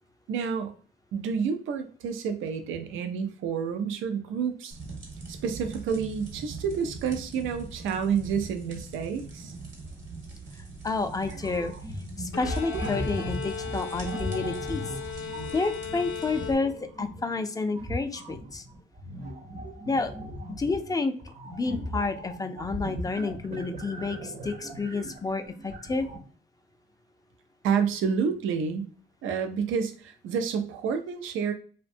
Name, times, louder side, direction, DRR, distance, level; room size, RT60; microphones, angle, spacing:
voice 1, 0.3-0.7 1.1-4.8 5.3-9.5 27.6-28.9 29.2-31.5, right 6 dB, 85° right, 8 dB, 0.5 m, -29 dB
sound 1, 4.7-16.5, right 3 dB, 65° right, 1.1 m, -43 dB
voice 2, 10.8-11.7 12.2-14.8 15.2-16.7 17.0-18.6 19.9-20.1 20.6-21.1 21.5-26.1, left 3 dB, 20° left, 7 dB, 0.3 m, -30 dB
sound 2, 11.3-17.3 17.7-26.2, equal, 35° right, 0.6 m, -37 dB
Bowed string instrument, 12.3-17.0, left 7 dB, 85° left, 0.4 m, -37 dB
2.5 x 2.1 x 2.5 m, 0.42 s
cardioid pair, 90°, 20 cm